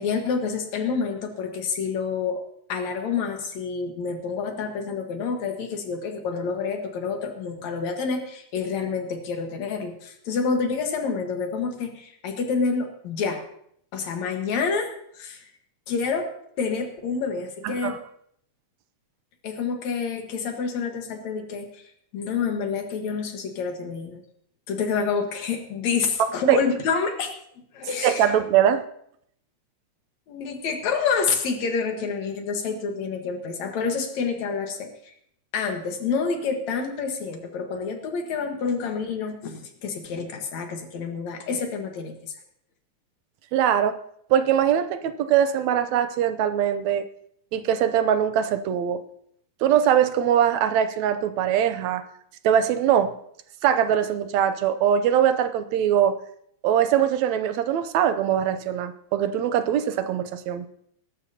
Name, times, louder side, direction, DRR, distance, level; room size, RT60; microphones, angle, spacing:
voice 1, 0.0-2.4 2.7-13.4 13.9-14.9 15.1-15.4 15.9-16.3 16.6-18.0 19.4-21.8 22.1-24.2 24.7-27.3 27.7-28.3 30.3-35.1 35.5-42.3, left 5 dB, 70° left, 4 dB, 2.8 m, -28 dB
voice 2, 17.6-18.0 26.5-26.6 28.0-28.8 43.5-44.0 44.3-47.1 47.5-49.0 49.6-52.0 52.4-53.1 53.6-56.2 56.6-60.7, right 9 dB, 75° right, 11 dB, 1.9 m, -22 dB
21.0 x 12.0 x 2.8 m, 0.70 s
omnidirectional pair, 3.3 m